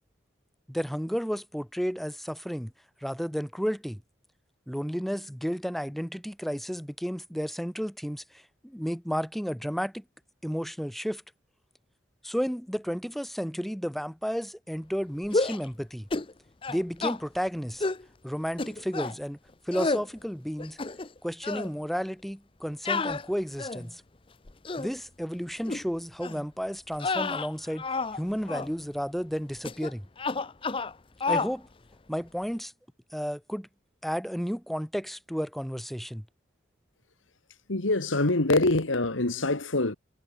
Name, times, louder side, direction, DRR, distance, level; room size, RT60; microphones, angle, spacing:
voice 1, 0.7-2.7 3.0-4.0 4.7-10.0 10.4-11.2 12.2-16.1 16.7-17.9 18.2-19.4 19.7-20.8 21.2-24.0 24.8-27.9 28.2-30.1 31.3-31.7 32.1-32.7 33.1-33.7 34.0-36.2, equal, ahead, 4.3 m, -32 dB
sound 1, 15.3-15.7 16.1-16.3 16.6-17.2 17.8-18.0 18.6-19.2 19.7-20.1 20.6-21.2 21.4-21.7 22.9-23.9 24.5-24.9 25.7-25.8 26.2-26.4 26.9-28.2 28.5-28.7 29.6-29.9 30.2-30.9 31.2-31.5, left 3 dB, 25° left, 0.7 m, -30 dB
voice 2, 37.7-40.0, left 2 dB, 90° left, 2.2 m, -25 dB
head